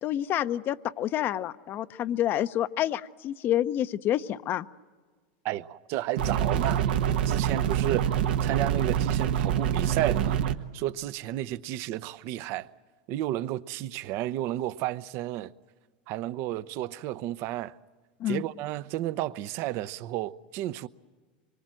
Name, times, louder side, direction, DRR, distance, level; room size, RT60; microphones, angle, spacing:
voice 1, 0.0-4.7 18.2-18.4, left 12 dB, 40° left, 0.7 m, -28 dB
voice 2, 5.4-6.8 7.3-8.1 8.4-10.4 10.7-12.7 13.1-15.5 16.1-17.7 18.3-20.9, right 14 dB, 55° right, 0.8 m, -32 dB
sound 1, 6.2-10.6, right 9 dB, 75° right, 1.2 m, -26 dB
25.5 x 23.0 x 7.7 m
hypercardioid pair, 110°, 5 cm